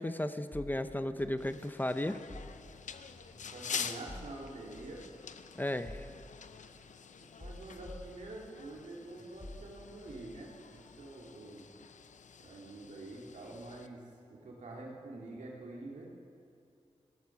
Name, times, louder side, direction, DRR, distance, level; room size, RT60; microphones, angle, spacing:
voice 1, 0.0-2.2 5.6-6.0, left 1 dB, 15° left, 11 dB, 0.7 m, -34 dB
sound 1, 0.5-8.9 9.2-11.1, left 1 dB, 45° left, 3.2 m, -52 dB
sound 2, 1.4-13.9, left 7 dB, 85° left, 0.6 m, -47 dB
voice 2, 3.3-5.0 7.4-11.7 12.4-14.0 14.3-16.1, right 2 dB, 85° right, -2 dB, 2.7 m, -46 dB
17.0 x 13.0 x 5.9 m, 2.5 s
cardioid pair, 60°, 12 cm